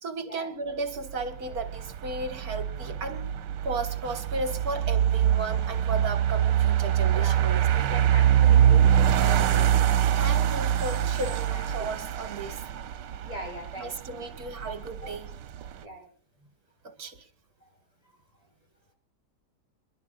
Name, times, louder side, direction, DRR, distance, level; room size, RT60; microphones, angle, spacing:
voice 1, 0.0-3.3 3.6-7.9 9.2-9.6 10.1-12.6 13.8-15.3 16.8-17.3, right 3 dB, 55° right, 2.2 m, -35 dB
sound 1, 1.0-15.8, right 10 dB, 85° right, 1.5 m, -24 dB
voice 2, 7.1-9.6 11.2-11.9 13.3-14.3 15.0-15.1 15.8-16.1 17.6-17.7, equal, 20° left, 7.0 m, -41 dB
28.5 x 11.5 x 2.4 m
omnidirectional pair, 1.9 m